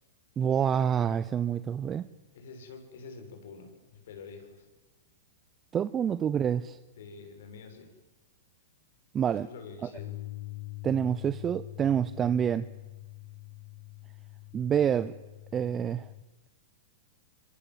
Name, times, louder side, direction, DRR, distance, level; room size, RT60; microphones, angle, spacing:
voice 1, 0.4-2.1 5.7-6.8 9.1-9.5 9.8-9.9 10.8-12.7 14.5-15.1 15.5-16.1, right 8 dB, 25° right, 14 dB, 0.8 m, -27 dB
voice 2, 2.3-4.7 7.0-7.9 9.2-10.2, left 4 dB, 70° left, 5 dB, 7.3 m, -47 dB
Bass guitar, 10.0-16.2, left 22 dB, 55° left, 1.3 m, -44 dB
26.0 x 24.5 x 7.6 m, 1.2 s
hypercardioid pair, 115°, 0 cm